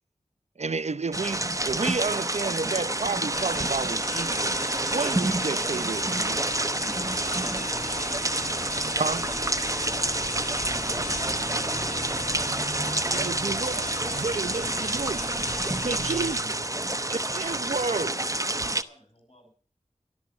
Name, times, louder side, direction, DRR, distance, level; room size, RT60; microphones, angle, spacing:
voice 1, 0.6-4.5 4.9-6.4 9.0-9.3 12.8-15.2 15.8-16.4 17.1-18.1, right 4 dB, 60° right, 0.6 m, -31 dB
sound 1, 1.1-18.8, right 2 dB, 25° right, 1.0 m, -28 dB
sound 2, 3.3-16.4, left 2 dB, 70° left, 3.2 m, -40 dB
sound 3, 5.1-17.3, left 1 dB, 25° left, 1.6 m, -44 dB
voice 2, 10.7-12.0 12.9-13.3 14.0-14.8, right 1 dB, ahead, 6.4 m, -44 dB
voice 3, 17.7-19.5, equal, 50° left, 7.5 m, -53 dB
13.5 x 12.5 x 6.0 m
wide cardioid pair, 45°, 13 cm